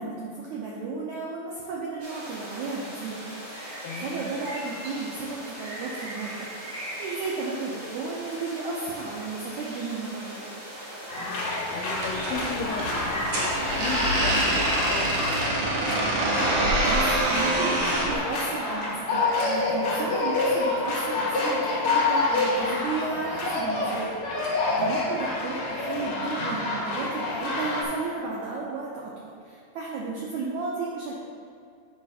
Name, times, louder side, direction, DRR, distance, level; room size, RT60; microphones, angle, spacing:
voice 1, 0.0-3.2 3.6-10.4 16.5-31.1, right 4 dB, 85° right, -4 dB, 1.6 m, -34 dB
sound 1, 2.0-15.4, equal, 35° right, 1.5 m, -39 dB
voice 2, 3.8-4.3 11.2-15.8 24.7-24.9, left 4 dB, 85° left, 2 dB, 2.5 m, -36 dB
sound 2, 11.1-27.8, left 2 dB, 60° left, 2.3 m, -28 dB
sound 3, 12.0-18.2, right 1 dB, 65° right, 2.2 m, -26 dB
8.9 x 3.3 x 5.5 m, 2.4 s
omnidirectional pair, 4.3 m